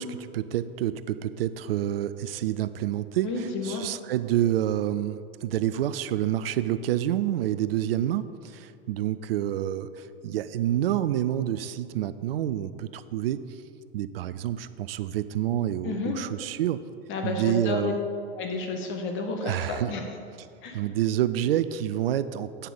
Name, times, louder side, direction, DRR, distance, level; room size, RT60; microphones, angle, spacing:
voice 1, 0.0-3.3 3.6-13.6 13.9-16.8 17.2-18.0 19.4-19.9 20.7-22.7, right 12 dB, 70° right, 14 dB, 0.5 m, -28 dB
voice 2, 3.2-3.8 15.8-16.2 17.1-17.9 18.3-20.0 20.6-20.8, left 3 dB, 40° left, 4 dB, 1.4 m, -31 dB
9.3 x 5.8 x 5.1 m, 2.5 s
hypercardioid pair, 90°, 30 cm